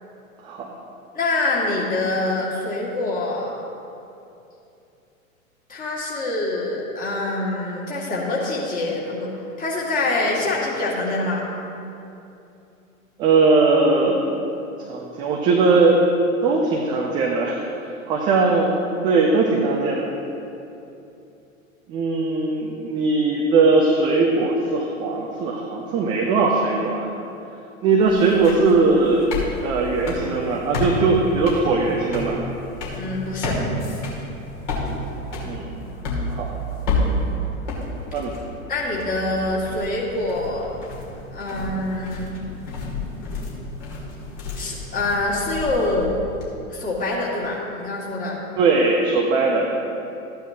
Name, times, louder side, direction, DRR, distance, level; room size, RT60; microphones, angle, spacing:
voice 1, 1.1-3.6 5.7-9.3 9.6-11.5 33.0-33.6 38.7-40.7 41.3-42.4 44.6-46.2 46.7-48.4, left 2 dB, 20° left, -4 dB, 2.0 m, -25 dB
voice 2, 13.2-14.3 14.9-16.0 16.4-17.6 18.1-18.8 19.0-20.0 21.9-27.1 27.8-29.3 29.6-32.4 35.4-35.8 36.3-36.5 38.1-38.3 48.6-49.8, right 3 dB, 10° right, -1 dB, 0.3 m, -19 dB
sound 1, 28.0-46.4, left 2 dB, 45° left, 2.4 m, -30 dB
13.5 x 9.3 x 2.8 m, 2.8 s
figure-of-eight pair, 100°, 41 cm